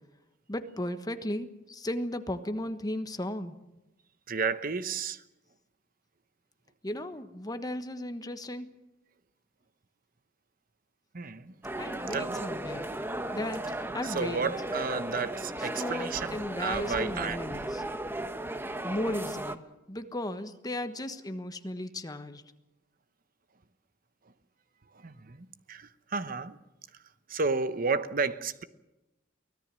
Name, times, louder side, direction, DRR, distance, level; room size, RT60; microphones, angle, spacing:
voice 1, 0.5-3.6 6.8-8.7 11.8-12.9 13.3-13.6 13.9-14.5 15.6-17.8 18.8-22.4, left 1 dB, 20° left, 1.2 m, -35 dB
voice 2, 4.3-5.2 11.1-11.6 12.1-12.4 14.0-17.4 24.9-26.6 27.3-28.6, right 4 dB, 50° right, 1.0 m, -32 dB
sound 1, 11.6-19.6, right 1 dB, 10° right, 0.9 m, -36 dB
24.0 x 17.5 x 7.6 m
head